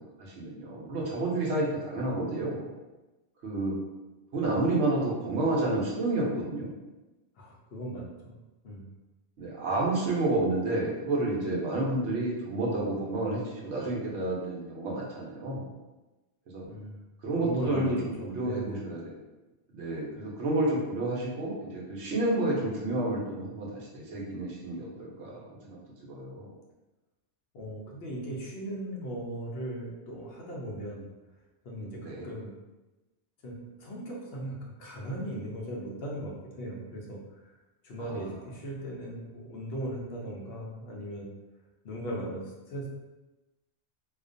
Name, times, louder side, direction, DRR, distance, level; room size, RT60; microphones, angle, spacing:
voice 1, 0.2-2.6 3.4-3.8 4.3-6.7 9.4-15.6 16.5-16.6 17.2-18.0 18.2-19.0 19.7-26.5 32.0-32.3 38.0-38.3, right 2 dB, 75° right, -3 dB, 0.9 m, -30 dB
voice 2, 7.4-8.4 8.6-8.9 16.6-17.0 17.4-18.8 27.5-31.0 31.6-32.5 33.4-37.5 37.8-41.3 41.8-42.9, right 1 dB, 65° left, -3 dB, 0.7 m, -38 dB
2.4 x 2.2 x 2.5 m, 1.1 s
omnidirectional pair, 1.2 m